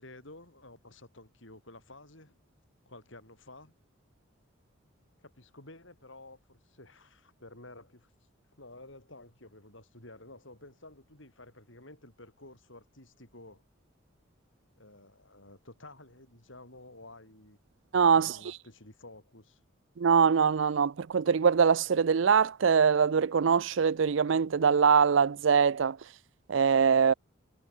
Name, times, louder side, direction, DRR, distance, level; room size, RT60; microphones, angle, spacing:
voice 1, 0.0-2.4 2.9-3.7 5.2-8.1 8.6-13.6 14.8-17.6 18.1-19.6, left 2 dB, 65° left, 7.6 m, -52 dB
voice 2, 17.9-18.4 20.0-26.0 26.5-27.1, right 6 dB, 65° right, 0.5 m, -23 dB
head